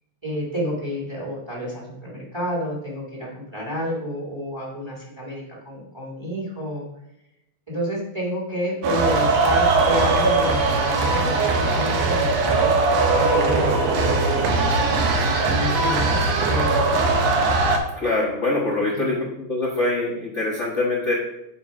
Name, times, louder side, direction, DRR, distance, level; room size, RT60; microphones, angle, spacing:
voice 1, 0.2-6.9 7.7-12.7 13.1-14.9 15.3-17.3 18.9-19.2, equal, 10° right, -5 dB, 1.6 m, -30 dB
sound 1, 8.8-17.8, right 3 dB, 65° right, 1.8 m, -20 dB
voice 2, 18.0-21.1, left 2 dB, 85° left, -4 dB, 0.6 m, -24 dB
7.5 x 4.5 x 4.9 m, 0.84 s
omnidirectional pair, 3.5 m